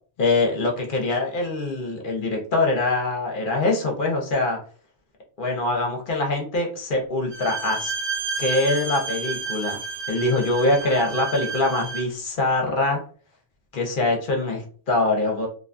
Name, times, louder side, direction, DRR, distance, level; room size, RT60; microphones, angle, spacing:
voice 1, 0.2-4.6 5.4-7.9 8.4-9.8 10.1-13.0 13.7-15.5, left 2 dB, 55° left, 1 dB, 0.8 m, -23 dB
Bowed string instrument, 7.3-12.1, right 4 dB, 70° right, 1.1 m, -31 dB
2.5 x 2.2 x 2.5 m, 0.43 s
omnidirectional pair, 1.2 m